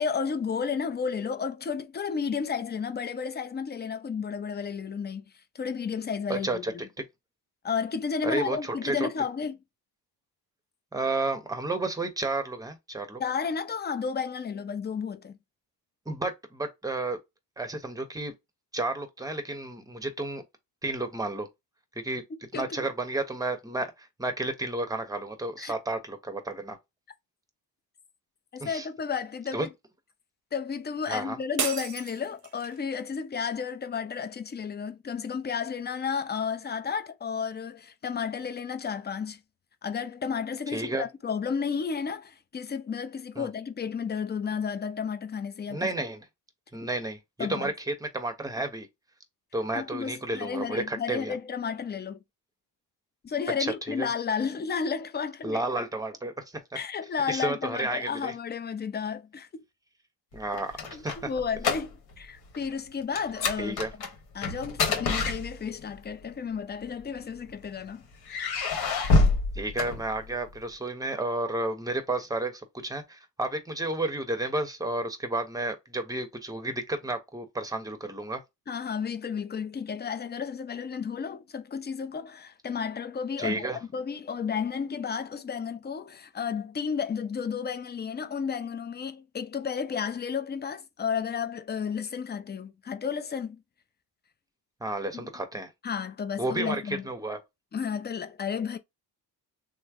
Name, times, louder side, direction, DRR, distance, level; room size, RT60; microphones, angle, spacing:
voice 1, 0.0-5.2 5.5-6.6 7.6-9.6 13.2-15.3 22.5-22.9 25.6-25.7 28.5-29.7 30.5-39.4 39.8-45.9 47.4-47.7 49.7-52.2 53.2-55.6 56.7-59.6 60.9-63.8 64.3-68.0 78.7-83.6 83.9-93.6 95.1-95.3 95.8-97.0 97.7-98.8, left 6 dB, 25° left, 0.5 m, -32 dB
voice 2, 6.3-7.0 8.2-9.1 10.9-13.2 16.1-17.2 17.6-18.3 18.7-20.4 20.8-21.5 22.0-22.2 22.5-26.8 28.6-28.9 29.5-29.7 31.1-31.4 40.7-41.0 43.4-43.5 45.7-46.2 46.7-47.2 47.5-48.9 49.5-51.4 53.6-54.1 55.4-56.6 57.3-58.3 60.3-61.1 63.6-63.9 69.5-78.4 83.4-83.8 94.8-95.7 96.4-97.4, right 2 dB, 10° right, 0.9 m, -31 dB
sound 1, 31.6-32.8, right 7 dB, 45° right, 0.7 m, -33 dB
sound 2, 60.4-62.3 62.5-62.8 63.2-65.9 66.8-67.7 68.2-70.5, left 3 dB, 60° left, 1.1 m, -27 dB
3.1 x 2.1 x 3.5 m
cardioid pair, 90°, 42 cm